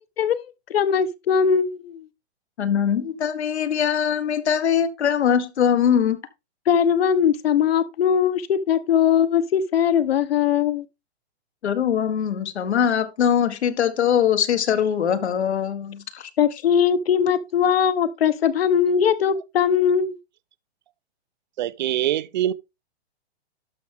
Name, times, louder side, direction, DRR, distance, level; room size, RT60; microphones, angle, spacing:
voice 1, 0.7-2.0 6.7-10.8 16.4-20.2, left 8 dB, 65° left, 1.1 m, -20 dB
voice 2, 2.6-6.2 11.6-16.3, left 8 dB, 85° left, 1.8 m, -22 dB
voice 3, 21.6-22.5, right 12 dB, 45° right, 0.5 m, -23 dB
12.0 x 5.9 x 3.6 m
hypercardioid pair, 165°, 32 cm